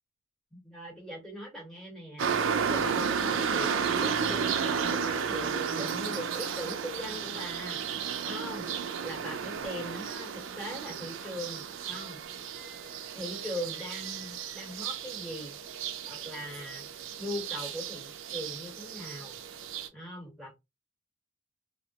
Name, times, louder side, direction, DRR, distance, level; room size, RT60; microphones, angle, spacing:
voice 1, 0.5-2.3 2.6-8.7 9.0-12.3 13.1-15.6 16.1-19.4 19.9-20.5, equal, ahead, 1.2 m, -40 dB
sound 1, 2.2-19.9, right 6 dB, 70° right, 0.4 m, -33 dB
3.0 x 2.1 x 2.8 m
head